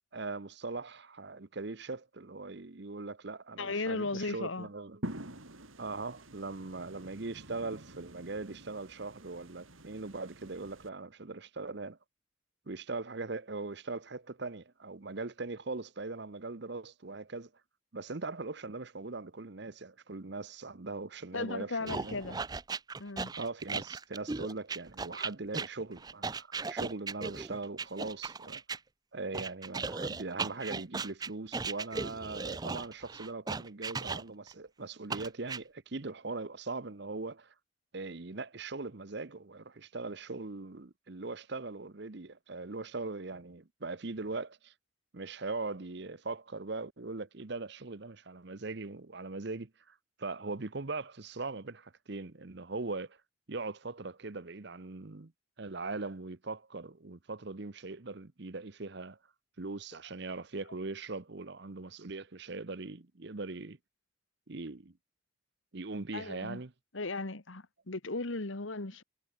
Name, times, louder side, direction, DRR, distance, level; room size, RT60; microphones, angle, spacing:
voice 1, 0.1-5.0 5.8-12.0 12.7-17.5 17.9-22.1 23.4-28.8 29.1-37.5 37.9-44.7 45.1-53.2 53.5-55.3 55.6-59.2 59.6-63.8 64.5-64.9 65.7-66.7, right 3 dB, 55° right, 0.9 m, -40 dB
voice 2, 3.6-4.7 21.3-22.4 23.0-23.3 66.1-66.6 66.9-69.0, left 3 dB, 70° left, 1.6 m, -36 dB
sound 1, 5.0-10.9, right 1 dB, 80° right, 4.8 m, -47 dB
sound 2, 21.9-28.8 29.3-34.5 35.1-35.6, right 4 dB, 20° right, 0.5 m, -37 dB
head